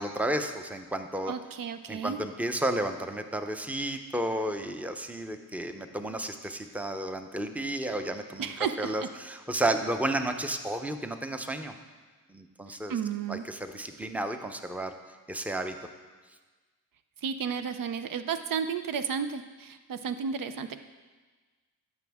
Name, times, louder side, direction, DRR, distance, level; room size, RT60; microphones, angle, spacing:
voice 1, 0.0-1.3 1.9-8.5 8.8-11.7 12.3-12.9 13.3-14.9 15.3-15.8, right 1 dB, 5° right, 7 dB, 0.7 m, -32 dB
voice 2, 1.3-2.2 8.4-9.1 12.9-13.4 17.2-20.8, right 7 dB, 65° right, 10 dB, 0.6 m, -33 dB
13.5 x 6.1 x 3.5 m, 1.3 s
cardioid pair, 65°, 37 cm